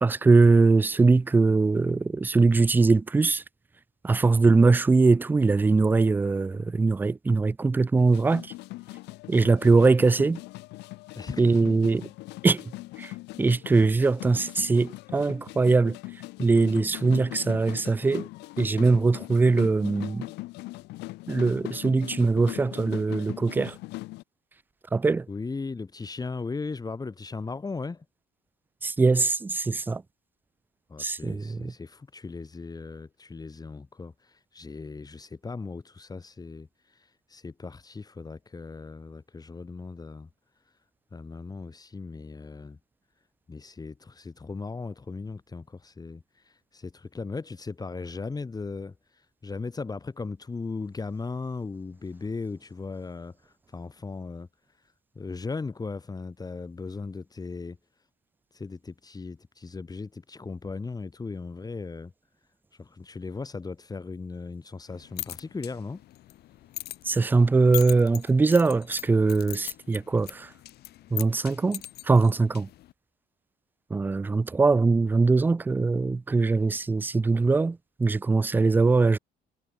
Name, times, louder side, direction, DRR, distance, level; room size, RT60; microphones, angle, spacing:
voice 1, 0.0-3.4 4.0-8.5 9.3-10.4 11.4-12.1 12.4-13.1 13.4-16.0 16.4-18.3 18.6-20.3 21.3-23.8 24.9-25.3 28.8-30.0 31.0-31.7 67.0-70.5 71.1-72.7 73.9-79.2, right 3 dB, 10° right, 0.3 m, -22 dB
sound 1, 8.0-24.2, left 20 dB, 90° left, 1.8 m, -40 dB
voice 2, 11.1-11.9 25.3-28.0 30.9-40.3 40.7-40.8 41.1-42.8 43.5-57.8 58.5-62.1 62.7-66.0, left 4 dB, 20° left, 4.9 m, -37 dB
sound 2, 64.9-72.9, left 15 dB, 70° left, 1.6 m, -41 dB
cardioid pair, 110°, 17 cm